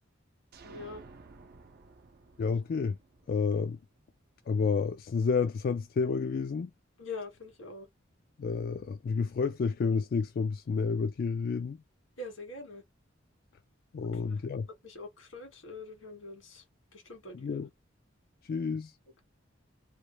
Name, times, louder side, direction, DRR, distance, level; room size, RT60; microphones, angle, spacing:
sound 1, 0.5-4.2, right 3 dB, 55° right, 0.5 m, -54 dB
voice 1, 0.6-1.0 7.0-7.9 12.2-12.8 14.0-14.5 14.8-16.6 16.9-17.6, left 3 dB, 85° left, 1.6 m, -44 dB
voice 2, 2.4-3.0 3.3-3.8 4.5-6.7 8.4-11.8 13.9-14.7 17.4-17.7 18.4-18.9, left 5 dB, 50° left, 0.3 m, -30 dB
3.1 x 2.4 x 3.2 m
head